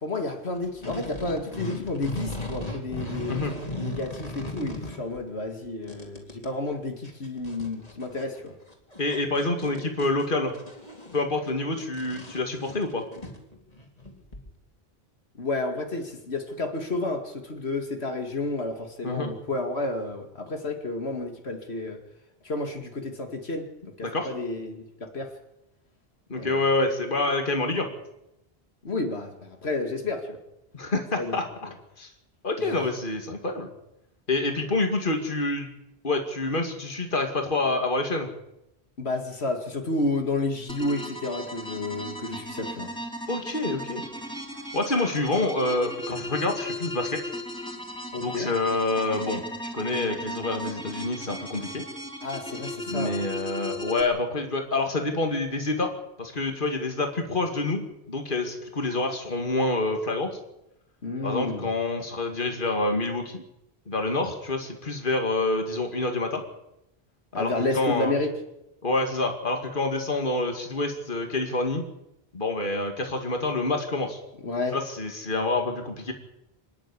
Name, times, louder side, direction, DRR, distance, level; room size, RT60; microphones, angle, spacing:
voice 1, 0.0-8.5 15.4-22.0 22.4-23.7 24.0-25.3 26.4-26.6 28.8-30.4 31.2-31.4 32.6-32.8 39.0-42.9 48.1-48.5 52.2-53.2 61.0-61.7 67.3-68.3 74.4-74.8, left 2 dB, 80° left, 4 dB, 2.5 m, -31 dB
sound 1, 0.5-5.2 5.6-6.5 6.7-6.8 7.0-14.5, left 1 dB, 35° left, 3.3 m, -37 dB
voice 2, 9.0-10.5 11.1-13.1 19.0-19.3 24.0-24.3 26.3-27.9 30.7-31.4 32.0-32.1 32.4-33.7 34.3-35.7 36.0-38.3 43.3-44.0 44.7-47.2 48.2-49.4 49.7-51.8 52.9-55.9 56.2-60.4 61.2-63.4 63.9-66.4 67.3-68.2 68.8-71.8 72.3-74.2 74.7-76.1, left 2 dB, 50° left, 4 dB, 2.5 m, -27 dB
sound 2, 40.7-54.0, left 1 dB, 5° left, 3.1 m, -36 dB
25.5 x 10.5 x 9.9 m, 0.87 s
omnidirectional pair, 1.1 m